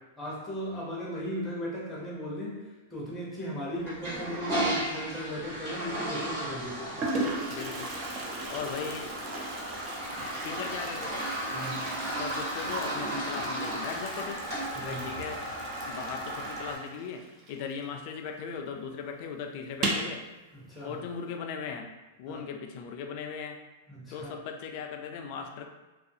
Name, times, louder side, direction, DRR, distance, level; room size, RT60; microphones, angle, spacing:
voice 1, 0.2-2.6 2.9-7.0 10.4-10.6 11.5-11.9 14.7-15.0 20.5-20.9 22.3-22.4 23.9-24.3, equal, 5° left, -6 dB, 0.7 m, -37 dB
Toilet flush, 3.8-16.8, right 1 dB, 50° right, 1.1 m, -35 dB
Toilet flush 2, 5.5-5.9 6.6-6.7 7.0-18.3 18.5-18.6 18.9-19.0 19.7-20.2, right 2 dB, 30° right, 0.4 m, -38 dB
voice 2, 7.5-7.9 8.5-9.1 10.2-11.3 12.2-14.4 14.8-15.4 15.8-20.2 20.8-21.9 22.2-23.6 24.1-25.7, left 6 dB, 50° left, 4 dB, 0.3 m, -38 dB
2.4 x 2.3 x 2.6 m, 1.2 s
supercardioid pair, 140°, 0 cm